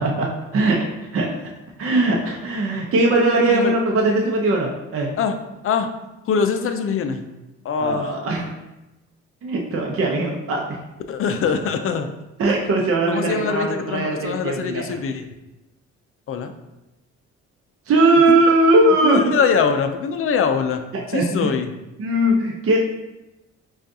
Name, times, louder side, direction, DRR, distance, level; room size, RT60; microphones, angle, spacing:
voice 1, 0.0-1.4 1.8-5.1 7.8-8.5 9.4-10.8 12.4-15.0 17.9-19.4 20.9-21.5 22.0-22.8, right 2 dB, 50° right, -1 dB, 0.7 m, -20 dB
voice 2, 6.3-7.2 7.6-8.1 11.1-12.1 13.1-15.3 16.3-16.5 18.3-18.4 19.0-20.8 21.1-21.7, left 6 dB, 45° left, 7 dB, 0.4 m, -23 dB
5.1 x 2.4 x 2.7 m, 0.98 s
cardioid pair, 90°, 30 cm